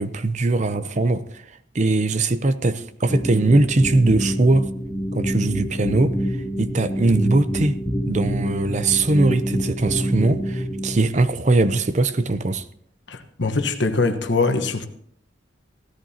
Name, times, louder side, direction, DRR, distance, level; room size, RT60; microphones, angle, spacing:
voice 1, 0.0-1.4 1.7-4.7 5.1-6.2 6.6-7.8 8.1-12.6, right 2 dB, 40° right, 0.6 m, -20 dB
sound 1, 3.1-11.0, equal, ahead, 3.2 m, -26 dB
voice 2, 13.1-14.9, left 3 dB, 70° left, 1.2 m, -22 dB
16.5 x 14.0 x 2.8 m
head